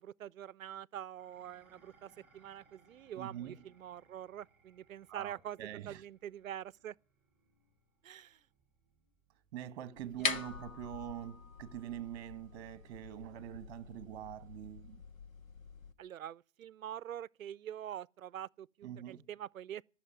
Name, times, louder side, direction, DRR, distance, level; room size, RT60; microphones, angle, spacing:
voice 1, 0.0-5.6 5.9-6.9 8.0-8.4 10.2-10.3 16.0-19.8, right 10 dB, 85° right, 0.6 m, -45 dB
Dishes pots and pans, 1.2-10.0, right 4 dB, 5° right, 6.4 m, -69 dB
voice 2, 3.1-3.7 5.1-6.0 9.5-15.0 18.8-19.2, right 11 dB, 30° right, 1.4 m, -44 dB
sound 1, 10.0-15.9, left 5 dB, 90° left, 1.4 m, -43 dB
14.0 x 6.5 x 9.2 m
hypercardioid pair, 145°, 40 cm